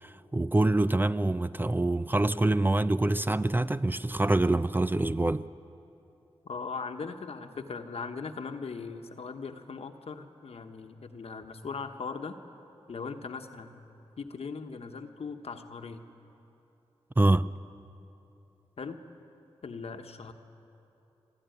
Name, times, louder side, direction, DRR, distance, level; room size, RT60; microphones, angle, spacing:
voice 1, 0.0-5.5 17.2-17.5, right 2 dB, 20° right, 0.4 m, -25 dB
voice 2, 6.4-12.4 12.9-13.8 14.2-16.0 18.8-19.0 19.6-20.3, left 5 dB, 70° left, 1.2 m, -39 dB
23.0 x 12.5 x 9.2 m
cardioid pair, 55°, 11 cm